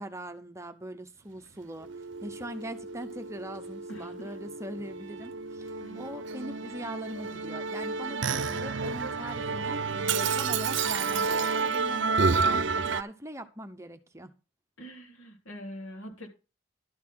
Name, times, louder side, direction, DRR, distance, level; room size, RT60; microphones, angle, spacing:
voice 1, 0.0-14.3, right 1 dB, 15° right, 0.8 m, -42 dB
Musical instrument, 1.8-13.0, right 4 dB, 65° right, 0.6 m, -30 dB
voice 2, 3.9-4.3 5.8-6.1 14.8-16.3, equal, 85° left, 3.5 m, -44 dB
12.5 x 4.2 x 7.4 m
head